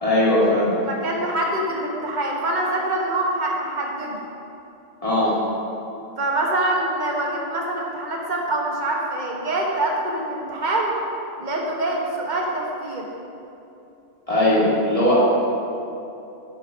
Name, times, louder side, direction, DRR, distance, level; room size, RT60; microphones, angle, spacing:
voice 1, 0.0-0.7 5.0-5.3 14.3-15.1, left 1 dB, 35° left, -8 dB, 2.2 m, -19 dB
voice 2, 0.9-4.3 6.2-10.9 11.4-13.1, right 1 dB, 45° right, -1 dB, 1.3 m, -25 dB
9.5 x 5.4 x 4.7 m, 2.8 s
omnidirectional pair, 1.1 m